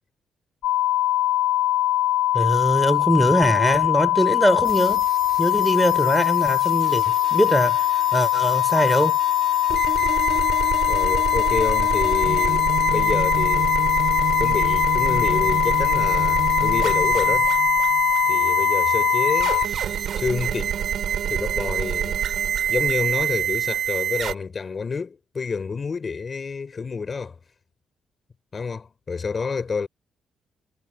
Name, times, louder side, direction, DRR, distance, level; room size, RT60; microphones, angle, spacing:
sound 1, 0.6-19.7, left 14 dB, 85° left, 1.8 m, -21 dB
voice 1, 2.3-5.1 5.4-9.2, equal, ahead, 4.5 m, -22 dB
sound 2, 4.7-24.3, right 9 dB, 65° right, 4.4 m, -27 dB
voice 2, 10.9-13.8 14.4-17.5 18.3-20.8 21.3-22.2 22.7-27.4 28.5-29.9, left 5 dB, 35° left, 4.2 m, -29 dB
cardioid pair, 90°, 0 cm